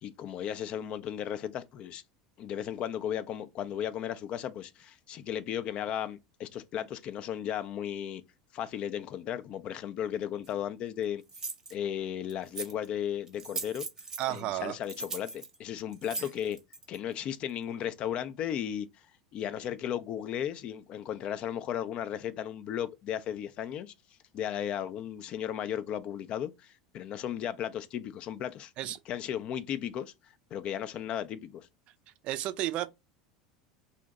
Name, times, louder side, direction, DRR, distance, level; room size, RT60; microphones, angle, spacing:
voice 1, 0.0-2.0 2.4-8.2 8.5-11.2 11.7-13.8 14.3-16.6 16.9-18.9 19.3-23.9 24.3-28.7 29.1-30.1 30.5-31.7, left 10 dB, 40° left, 0.3 m, -35 dB
sound 1, 10.4-10.5 11.3-11.7 12.3-12.9 13.3-14.4 14.8-17.0, right 3 dB, 20° right, 0.7 m, -39 dB
voice 2, 14.2-14.7 16.2-16.3 28.8-29.0 32.2-32.9, right 14 dB, 45° right, 0.3 m, -32 dB
2.6 x 2.1 x 3.8 m
figure-of-eight pair, 75°, 3 cm